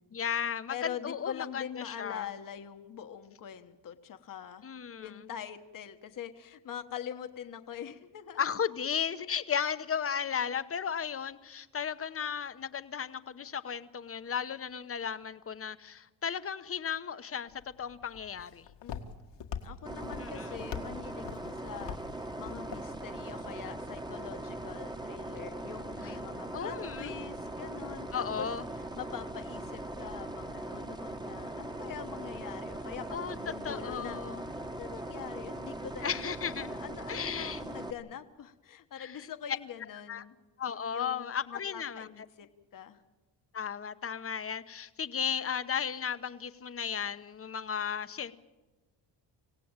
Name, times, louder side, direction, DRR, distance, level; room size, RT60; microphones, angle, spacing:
voice 1, 0.1-2.3 4.6-5.1 8.4-17.5 17.8-18.6 20.1-20.5 26.5-27.1 28.1-28.6 33.1-34.4 36.0-36.7 37.1-37.6 39.0-39.3 40.1-40.2 40.6-42.1 43.5-48.3, left 7 dB, 30° left, 12 dB, 0.9 m, -35 dB
voice 2, 0.7-4.6 5.0-8.6 18.8-19.0 19.6-28.5 28.7-34.2 34.6-36.2 36.6-40.4 40.9-42.5 42.7-43.0, left 9 dB, 45° left, 8 dB, 1.3 m, -44 dB
Walk footsteps, 17.5-23.7, left 7 dB, 75° left, 2.0 m, -44 dB
sound 1, 19.9-37.9, right 1 dB, 10° right, 1.2 m, -40 dB
26.0 x 17.0 x 8.9 m, 1.2 s
cardioid pair, 125°, 43 cm